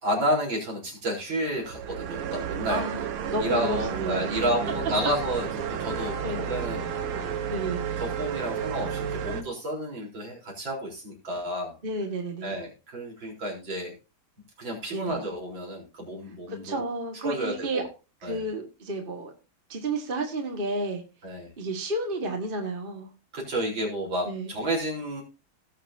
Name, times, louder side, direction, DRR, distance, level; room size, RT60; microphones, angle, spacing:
voice 1, 0.0-2.8 3.4-6.8 7.1-7.4 8.0-11.8 12.4-13.9 14.6-16.8 17.2-17.8 18.2-18.5 21.2-21.5 23.3-25.2, equal, 60° right, -1 dB, 4.8 m, -31 dB
sound 1, 1.4-9.4, right 8 dB, 90° right, 2.0 m, -32 dB
voice 2, 2.7-4.4 6.2-6.4 7.5-7.8 11.8-12.6 14.9-15.2 16.5-17.8 18.2-19.3 19.7-21.0 21.6-23.1 24.3-24.5, right 2 dB, 25° right, 3 dB, 1.8 m, -31 dB
18.0 x 7.4 x 2.7 m, 0.31 s
omnidirectional pair, 2.3 m